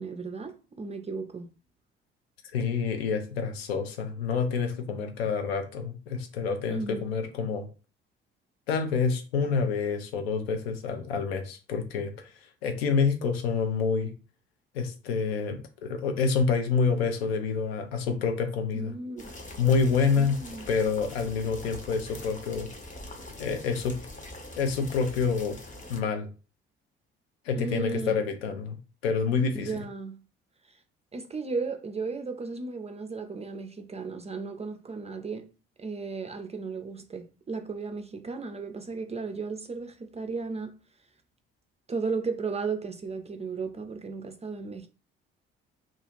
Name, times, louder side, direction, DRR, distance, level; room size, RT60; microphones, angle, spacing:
voice 1, 0.0-1.5 6.7-7.1 18.7-19.6 20.2-20.7 27.6-28.2 29.5-30.2 30.7-30.8 31.1-35.5 35.8-40.7 41.9-44.9, right 4 dB, 20° right, 0.4 m, -35 dB
voice 2, 2.5-7.7 8.7-12.3 12.6-14.1 14.7-18.9 19.6-20.4 20.7-22.7 23.4-24.0 24.6-25.6 25.9-26.3 27.5-28.8 29.0-29.7, left 5 dB, 80° left, 0.5 m, -27 dB
sound 1, 19.2-26.0, left 1 dB, 25° left, 0.8 m, -43 dB
2.5 x 2.3 x 2.9 m
hypercardioid pair, 50°, 30 cm